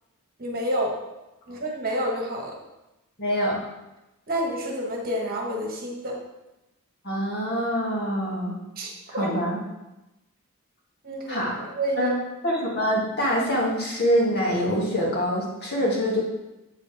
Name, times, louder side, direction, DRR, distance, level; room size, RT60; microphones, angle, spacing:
voice 1, 0.4-1.0 1.5-2.6 4.3-6.2 8.8-9.3 11.0-12.1, equal, 45° right, 0 dB, 1.6 m, -29 dB
voice 2, 3.2-3.6 7.0-8.6 9.2-9.6 11.3-11.6 12.0-12.1 12.4-16.2, equal, 50° left, -4 dB, 2.3 m, -25 dB
8.1 x 7.4 x 3.5 m, 0.97 s
head